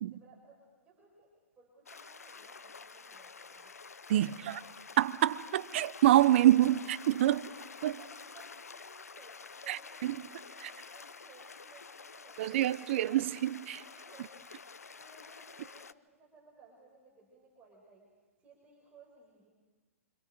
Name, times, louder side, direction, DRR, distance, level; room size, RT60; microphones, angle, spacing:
voice 1, 0.1-3.8 4.1-4.5 7.8-13.0 13.6-14.3 14.9-18.1 18.4-19.5, right 4 dB, 20° right, 6.2 m, -60 dB
sound 1, 1.9-15.9, left 5 dB, 80° left, 0.6 m, -49 dB
voice 2, 4.1-4.6 5.0-7.4 7.8-7.9 9.7-10.3 10.6-10.7 12.4-13.8, right 13 dB, 50° right, 0.8 m, -26 dB
28.5 x 26.0 x 5.1 m
figure-of-eight pair, 115°, 8 cm